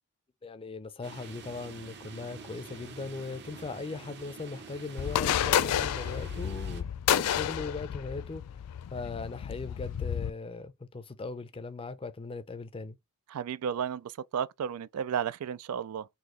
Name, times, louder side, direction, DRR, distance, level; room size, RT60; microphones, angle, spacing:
voice 1, 0.4-8.4 8.9-13.0, left 3 dB, 25° left, 0.5 m, -39 dB
sound 1, 1.0-6.8, right 4 dB, 50° right, 0.8 m, -47 dB
sound 2, 5.0-10.3, left 10 dB, 90° left, 0.3 m, -30 dB
voice 2, 13.3-16.1, right 8 dB, 75° right, 0.3 m, -33 dB
4.1 x 2.8 x 3.2 m
head